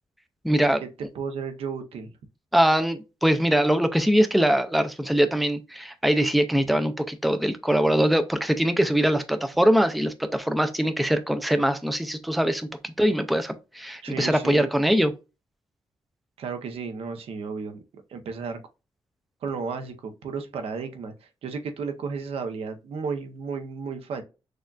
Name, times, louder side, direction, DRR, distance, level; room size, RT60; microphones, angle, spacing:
voice 1, 0.4-0.8 2.5-15.1, equal, ahead, 0.3 m, -22 dB
voice 2, 1.1-2.1 14.0-14.7 16.4-18.6 19.4-24.2, right 5 dB, 75° right, 0.7 m, -33 dB
6.3 x 2.3 x 2.3 m
wide cardioid pair, 175°, 10 cm